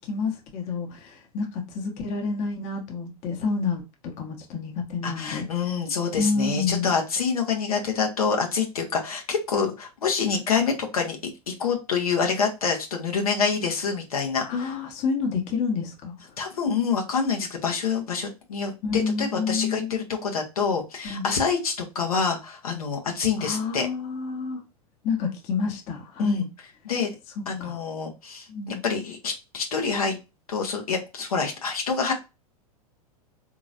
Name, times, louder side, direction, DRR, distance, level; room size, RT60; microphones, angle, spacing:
voice 1, 0.0-5.5 6.2-6.9 14.4-16.1 18.8-20.0 21.0-21.2 23.4-24.6 25.0-26.5 27.6-27.8 28.5-28.8, left 4 dB, 40° left, 0.9 m, -28 dB
voice 2, 5.0-14.5 16.4-23.9 26.2-26.4 26.9-27.1 27.5-30.2 30.5-32.1, left 5 dB, 70° left, 1.0 m, -26 dB
3.9 x 2.9 x 2.4 m
figure-of-eight pair, 95°, 19 cm